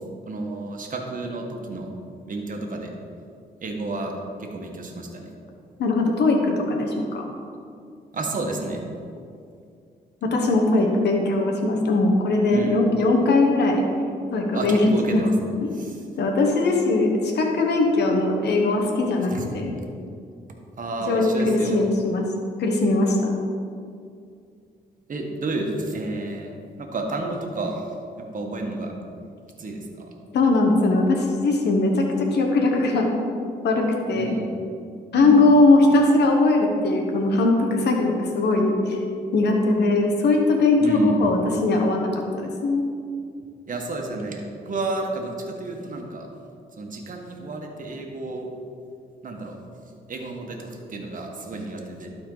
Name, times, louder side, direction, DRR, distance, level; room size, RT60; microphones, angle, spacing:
voice 1, 0.3-1.9 2.3-2.9 3.6-4.1 4.4-5.3 8.1-8.8 12.5-12.8 14.5-15.3 15.7-16.0 19.3-19.4 20.8-21.8 25.1-27.8 28.3-28.9 29.6-30.1 34.1-34.5 35.1-35.4 40.8-41.2 43.7-46.3 46.8-48.5 49.2-49.6 50.1-52.1, right 2 dB, 50° right, 1 dB, 1.4 m, -30 dB
voice 2, 5.8-7.2 10.2-13.8 14.3-15.2 16.2-19.7 21.0-22.3 22.6-23.3 30.3-33.1 33.6-34.4 35.1-39.0 39.3-42.8, left 2 dB, 75° left, 2 dB, 1.3 m, -20 dB
12.0 x 4.4 x 4.0 m, 2.3 s
cardioid pair, 65°, 17 cm